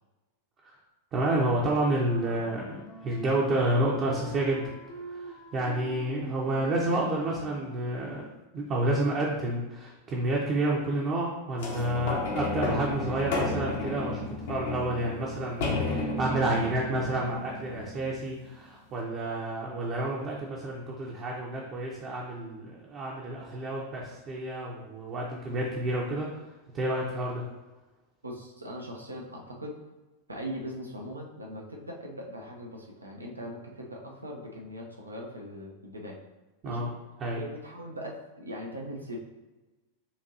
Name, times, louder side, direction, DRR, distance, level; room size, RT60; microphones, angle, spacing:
voice 1, 1.1-4.7 5.0-8.3 8.5-26.3 26.7-27.5 36.6-36.9 37.2-37.4, right 1 dB, 30° right, -4 dB, 0.8 m, -30 dB
Wind instrument woodwind instrument, 2.0-8.2, equal, 35° left, 0.6 m, -46 dB
sound 1, 11.6-18.3 19.0-19.1, left 3 dB, 55° left, 1.0 m, -33 dB
voice 2, 28.2-29.8 30.3-36.2 36.6-36.9 37.3-39.2, equal, 80° right, 0 dB, 0.8 m, -40 dB
6.9 x 2.7 x 2.6 m, 1.1 s
figure-of-eight pair, 90°, 0 cm